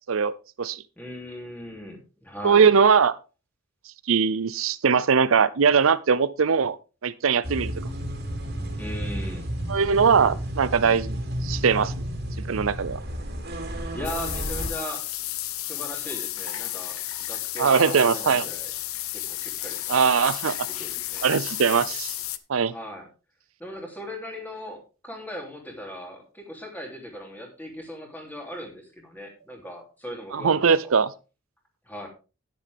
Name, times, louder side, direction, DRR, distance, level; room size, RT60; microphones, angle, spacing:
voice 1, 1.0-2.7 8.7-9.5 13.9-15.1 15.6-18.7 19.1-20.0 20.7-21.3 22.7-23.1 23.6-31.0 31.9-32.1, equal, 10° left, 1 dB, 3.1 m, -38 dB
voice 2, 2.4-3.2 4.1-6.8 7.0-7.7 9.7-11.9 12.5-13.0 17.6-18.5 19.9-20.7 21.2-22.1 22.5-22.7 30.3-31.1, right 6 dB, 75° right, 16 dB, 0.6 m, -21 dB
sound 1, 7.4-14.7, equal, 50° right, 2.8 m, -32 dB
sound 2, 14.0-22.4, left 14 dB, 90° left, 0.8 m, -32 dB
10.5 x 10.5 x 3.5 m, 0.31 s
head